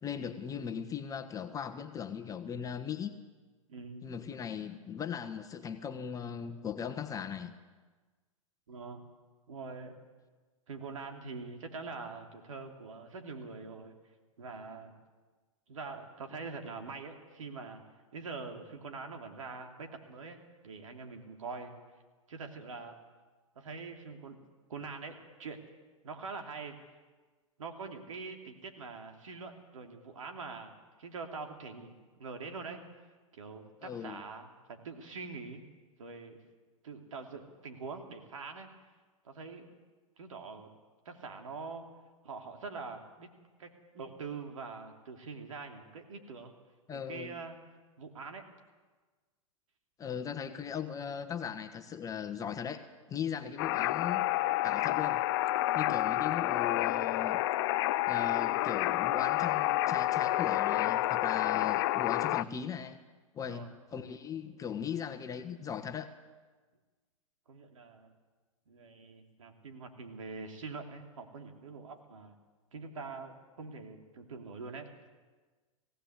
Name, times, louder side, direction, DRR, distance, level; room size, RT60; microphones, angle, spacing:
voice 1, 0.0-3.1 4.0-7.5 33.8-34.2 46.9-47.4 50.0-52.8 53.1-54.2 54.6-55.3 55.7-57.4 58.1-63.0 63.3-66.1, left 7 dB, 20° left, 8 dB, 1.3 m, -38 dB
voice 2, 3.7-4.0 8.7-9.0 9.5-10.0 10.7-13.9 14.4-14.9 15.7-17.8 18.1-21.7 22.3-23.0 23.5-24.4 24.7-25.6 26.0-26.8 27.6-30.7 31.0-31.9 32.2-32.8 33.3-35.6 36.0-36.4 36.8-38.7 39.2-39.7 40.2-40.7 41.0-41.8 42.2-43.3 43.6-46.5 46.9-47.6 48.0-48.4 61.4-61.8 63.4-63.7 67.5-68.1 68.7-72.3 72.7-74.9, right 4 dB, 70° right, 4 dB, 3.1 m, -44 dB
sound 1, 53.6-62.4, left 16 dB, 45° left, 0.5 m, -29 dB
19.0 x 17.0 x 8.1 m, 1.3 s
figure-of-eight pair, 105°, 17 cm